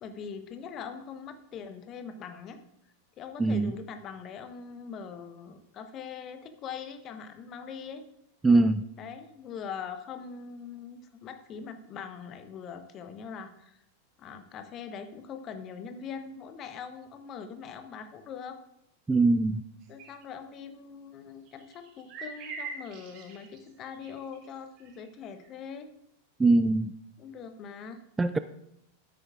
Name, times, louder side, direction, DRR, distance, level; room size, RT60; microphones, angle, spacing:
voice 1, 0.0-2.6 3.2-8.0 9.0-13.8 14.2-18.6 19.9-25.9 27.2-28.0, left 6 dB, 30° left, 8 dB, 1.0 m, -42 dB
voice 2, 3.4-3.7 8.4-8.8 19.1-19.6 26.4-26.9 28.2-28.4, right 3 dB, 10° right, 12 dB, 0.3 m, -22 dB
sound 1, 20.0-20.2 21.5-24.5 24.8-25.1 25.4-25.5, right 4 dB, 40° right, 1.9 m, -43 dB
13.0 x 9.7 x 2.5 m, 0.79 s
figure-of-eight pair, 90°, 0 cm